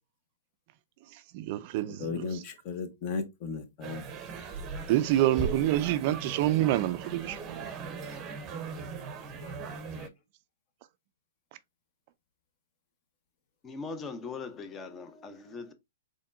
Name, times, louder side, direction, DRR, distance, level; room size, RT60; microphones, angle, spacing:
voice 1, 1.1-2.4 4.9-7.7, right 14 dB, 45° right, 0.3 m, -27 dB
voice 2, 2.0-4.0 9.4-9.5, left 5 dB, 40° left, 1.0 m, -35 dB
sound 1, 3.8-10.1, right 4 dB, 25° right, 0.7 m, -38 dB
voice 3, 13.6-15.7, left 4 dB, 20° left, 0.7 m, -40 dB
4.2 x 3.1 x 2.5 m
hypercardioid pair, 130°, 0 cm